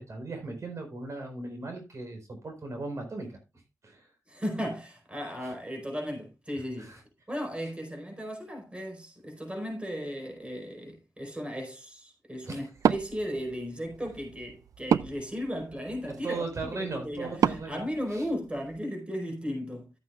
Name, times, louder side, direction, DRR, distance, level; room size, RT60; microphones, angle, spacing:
voice 1, 0.1-3.4 3.8-4.1 6.8-7.0 12.4-12.6 16.1-17.8 18.1-18.2, right 3 dB, 60° right, 4.6 m, -37 dB
voice 2, 4.3-6.9 7.3-19.9, equal, 20° right, 4.8 m, -36 dB
Wood, 12.7-18.8, right 8 dB, 85° right, 0.4 m, -32 dB
14.0 x 8.7 x 2.4 m
cardioid pair, 55°, 6 cm